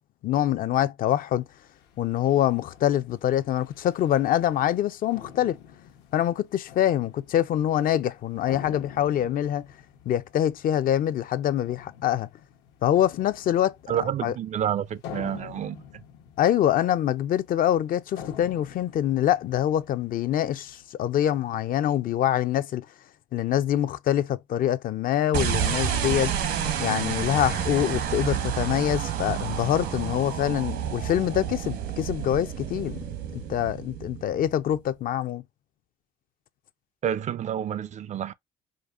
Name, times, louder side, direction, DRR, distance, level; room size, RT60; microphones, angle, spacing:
voice 1, 0.2-1.4 2.0-5.6 6.1-9.7 10.1-12.3 12.8-13.8 14.2-14.3 16.4-22.9 23.3-26.3 26.8-33.0 33.3-35.4, left 11 dB, 55° left, 0.5 m, -25 dB
sound 1, 1.0-20.9, left 8 dB, 85° left, 1.0 m, -47 dB
voice 2, 13.9-15.8 37.0-38.3, right 10 dB, 45° right, 0.4 m, -29 dB
sound 2, 25.3-34.7, right 8 dB, 80° right, 1.3 m, -29 dB
5.1 x 2.5 x 2.4 m
cardioid pair, 110°, 17 cm